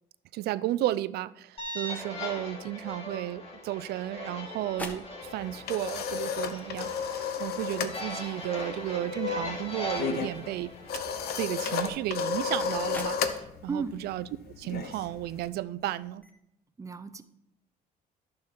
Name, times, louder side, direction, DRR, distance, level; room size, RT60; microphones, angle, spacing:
voice 1, 0.3-10.7 11.4-14.3 14.6-16.2, right 14 dB, 75° right, 0.4 m, -33 dB
sound 1, 1.6-11.9, left 2 dB, 35° left, 2.1 m, -39 dB
sound 2, 3.8-16.3, left 1 dB, 10° left, 1.4 m, -50 dB
sound 3, 5.3-8.0 8.3-8.6 8.8-15.5, left 6 dB, 70° left, 0.9 m, -33 dB
voice 2, 16.8-17.2, right 5 dB, 20° right, 0.6 m, -34 dB
10.5 x 6.5 x 4.4 m
cardioid pair, 110°, 17 cm